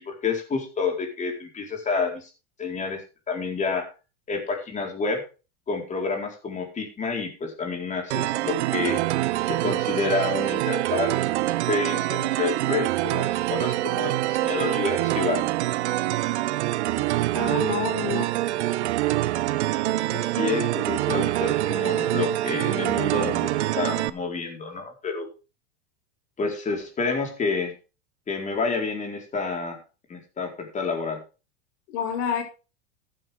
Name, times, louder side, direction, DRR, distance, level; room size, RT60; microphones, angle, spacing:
voice 1, 0.0-2.3 2.6-3.0 3.3-3.9 4.3-5.2 5.7-9.0 9.5-11.2 11.7-15.5 20.1-25.3 26.4-27.7 28.3-29.8 30.1-31.2, left 4 dB, 20° left, 2 dB, 4.4 m, -29 dB
sound 1, 8.1-24.1, right 16 dB, 80° right, 0.9 m, -25 dB
voice 2, 17.3-18.3 31.9-32.4, left 8 dB, 75° left, 4 dB, 5.4 m, -28 dB
14.5 x 9.2 x 3.6 m, 0.32 s
supercardioid pair, 130°, 33 cm